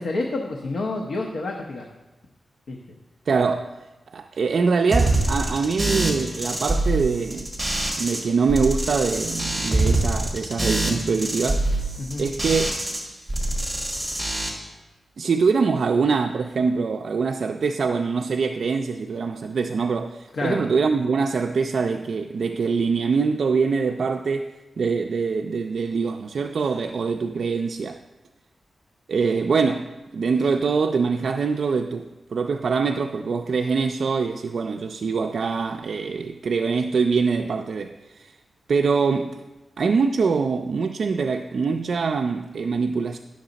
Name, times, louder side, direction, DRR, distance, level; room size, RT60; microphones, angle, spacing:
voice 1, 0.0-1.9 2.7-3.0 12.0-12.3 20.3-20.6, left 2 dB, 70° left, 0.8 m, -29 dB
voice 2, 3.3-3.7 4.1-7.5 8.0-11.7 12.2-12.7 15.2-28.0 29.1-38.3 38.7-39.4 39.8-43.2, right 5 dB, 60° right, 0.3 m, -24 dB
sound 1, 4.9-8.2 8.5-13.0 13.3-14.5, right 2 dB, 5° right, 1.5 m, -24 dB
10.5 x 6.4 x 3.9 m
wide cardioid pair, 175°, 0 cm